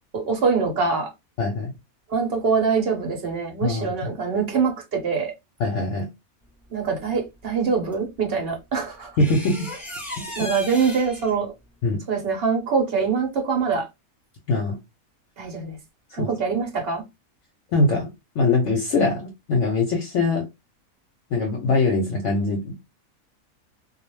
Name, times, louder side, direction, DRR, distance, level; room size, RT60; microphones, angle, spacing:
voice 1, 0.1-1.1 2.1-5.3 6.7-9.1 10.4-11.5 12.1-13.9 15.4-15.8 16.1-17.0, right 5 dB, 50° right, 0.9 m, -24 dB
voice 2, 1.4-1.7 3.6-3.9 5.6-6.1 9.2-9.7 10.2-10.5 11.8-12.0 14.5-14.8 16.2-16.3 17.7-18.1 18.4-20.5 21.3-22.7, left 3 dB, 65° left, 0.9 m, -22 dB
sound 1, 7.9-8.0 9.2-11.3, left 1 dB, ahead, 0.4 m, -35 dB
2.4 x 2.0 x 3.0 m
omnidirectional pair, 1.5 m